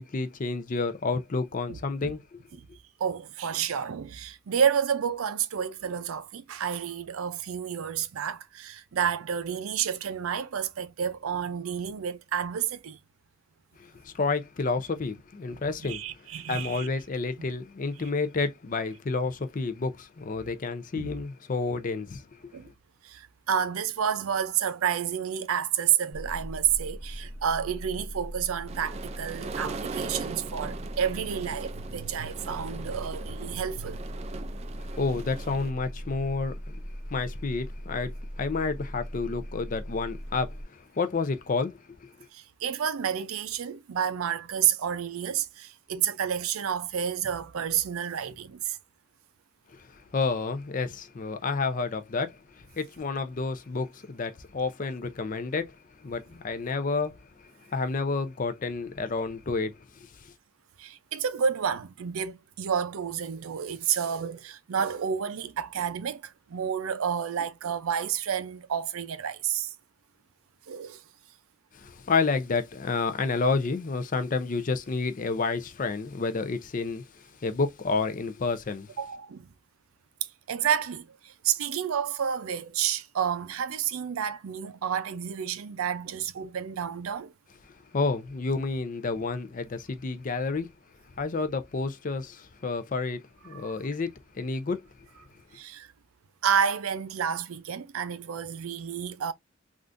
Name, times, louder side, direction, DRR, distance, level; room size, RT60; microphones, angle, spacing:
voice 1, 0.0-2.4 13.8-16.0 16.5-22.5 34.8-36.8 37.1-42.1 49.9-57.2 57.4-60.3 71.7-78.9 87.9-90.7 91.2-94.8, left 4 dB, 40° left, 0.5 m, -30 dB
voice 2, 1.7-2.1 3.0-13.0 15.8-16.9 21.0-21.1 22.5-22.7 23.0-34.0 42.3-48.8 60.8-69.7 70.7-71.0 79.0-79.5 80.2-87.3 93.5-93.8 95.5-95.9 96.4-99.3, right 8 dB, 90° right, 0.5 m, -30 dB
sound 1, 26.1-40.6, equal, 15° right, 0.7 m, -39 dB
sound 2, 28.7-35.7, right 4 dB, 30° right, 0.3 m, -40 dB
3.6 x 2.5 x 2.5 m
head